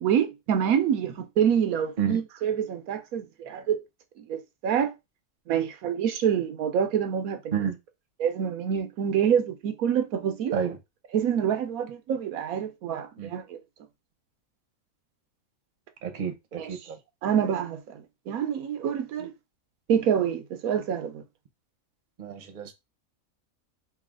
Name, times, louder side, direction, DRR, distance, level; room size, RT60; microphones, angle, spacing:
voice 1, 0.0-3.8 4.2-4.9 5.5-7.5 8.2-10.5 11.1-13.6 16.6-16.7 17.2-19.3 19.9-21.2, right 8 dB, 85° right, 1.1 m, -26 dB
voice 2, 16.0-17.0 22.2-22.7, right 8 dB, 45° right, 0.8 m, -30 dB
3.2 x 2.8 x 3.6 m
omnidirectional pair, 1.5 m